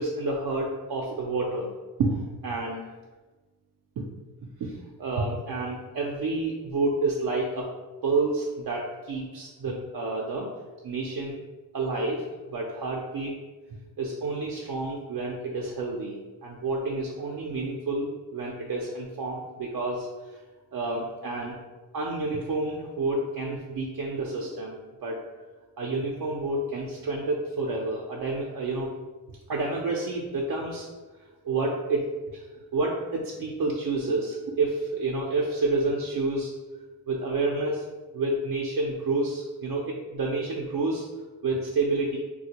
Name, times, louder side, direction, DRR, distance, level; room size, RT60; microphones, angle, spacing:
voice 1, 0.0-1.7 2.0-2.8 4.0-4.1 4.6-4.7 5.0-7.7 8.0-10.5 10.8-11.3 11.7-13.4 14.0-20.4 20.7-21.6 21.9-25.2 25.8-28.9 29.5-30.9 31.4-32.5 32.7-36.5 37.1-37.8 38.1-41.0 41.4-42.2, right 3 dB, 55° right, -1 dB, 0.5 m, -29 dB
3.4 x 2.2 x 2.8 m, 1.2 s
cardioid pair, 75°, 41 cm